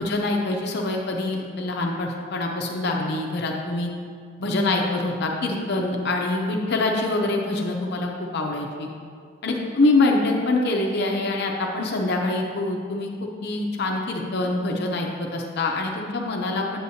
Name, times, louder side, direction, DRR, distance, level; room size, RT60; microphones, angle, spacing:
voice 1, 0.0-3.9 4.4-8.9 9.4-16.8, left 2 dB, 55° left, 1 dB, 0.6 m, -25 dB
7.8 x 7.7 x 2.8 m, 2.1 s
head